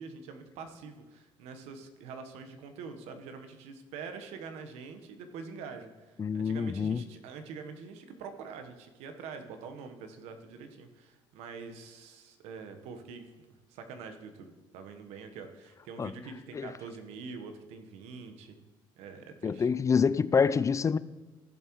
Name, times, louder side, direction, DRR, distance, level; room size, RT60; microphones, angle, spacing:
voice 1, 0.0-18.6 19.0-19.7, right 5 dB, 80° right, 1.1 m, -45 dB
voice 2, 6.2-7.0 16.0-16.1 16.5-16.7 19.4-21.0, left 6 dB, 30° left, 0.3 m, -26 dB
15.5 x 7.3 x 3.1 m
supercardioid pair, 70°, 11 cm